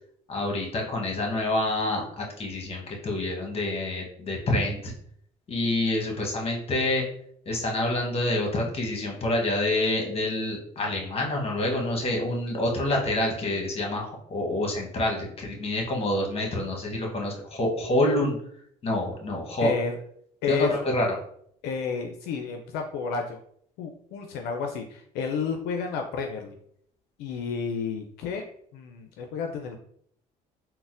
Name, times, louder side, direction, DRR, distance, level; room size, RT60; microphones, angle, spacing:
voice 1, 0.3-4.9 5.5-7.0 7.5-18.4 18.8-19.7 20.5-21.1, left 1 dB, 35° left, 0 dB, 1.0 m, -27 dB
voice 2, 19.6-20.0 20.4-20.7 21.6-23.4 23.8-26.6 27.2-28.5 28.7-29.8, left 5 dB, 80° left, 3 dB, 0.4 m, -31 dB
3.9 x 2.0 x 2.5 m, 0.67 s
supercardioid pair, 80°, 16 cm